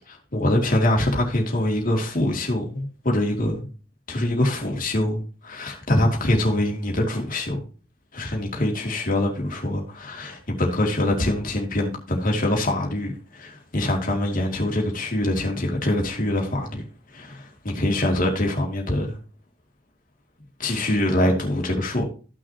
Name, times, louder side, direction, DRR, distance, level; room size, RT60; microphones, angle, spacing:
voice 1, 0.0-3.7 4.1-7.6 8.1-16.8 17.1-19.2 20.6-22.0, left 1 dB, 45° left, 2.6 m, -24 dB
14.5 x 6.2 x 2.9 m
head